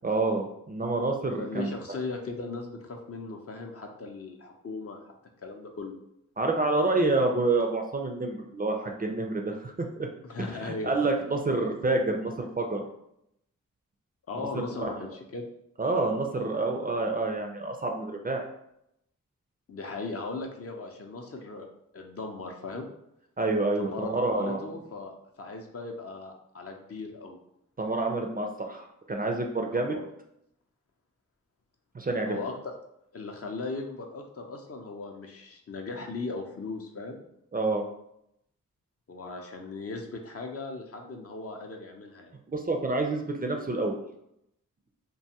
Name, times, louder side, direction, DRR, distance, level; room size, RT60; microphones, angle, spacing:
voice 1, 0.0-1.7 6.4-10.1 10.6-12.8 14.5-15.0 15.8-18.4 23.4-24.6 27.8-30.0 31.9-32.4 37.5-37.8 42.5-44.0, right 2 dB, 25° right, 2 dB, 0.4 m, -28 dB
voice 2, 1.4-5.9 10.2-10.9 14.3-15.5 19.7-21.7 21.9-22.9 23.8-25.1 25.4-27.4 29.7-30.0 32.2-32.7 33.1-37.2 39.1-42.3, left 3 dB, 45° left, 2 dB, 0.5 m, -38 dB
2.5 x 2.3 x 2.8 m, 0.79 s
cardioid pair, 45°, 34 cm